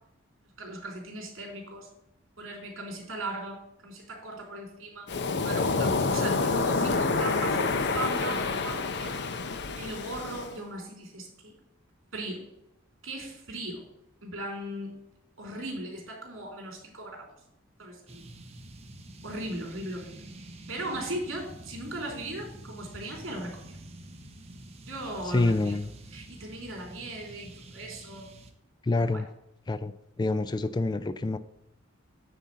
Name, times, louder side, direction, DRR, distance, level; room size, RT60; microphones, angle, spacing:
voice 1, 0.6-1.9 2.4-5.1 5.4-9.2 9.8-11.5 12.1-12.4 13.0-13.8 14.2-15.0 15.4-17.3 17.8-18.2 19.2-20.2 20.7-23.8 24.8-25.8 26.1-28.3 29.0-29.2, right 1 dB, 75° right, 0 dB, 3.5 m, -38 dB
Waves surf, 5.1-10.5, left 3 dB, 55° left, 0.7 m, -28 dB
sound 1, 18.1-28.5, right 1 dB, 30° right, 0.9 m, -47 dB
voice 2, 25.2-25.9 28.8-29.3 29.7-31.4, left 2 dB, 20° left, 13 dB, 0.3 m, -27 dB
9.1 x 4.3 x 7.4 m, 0.83 s
head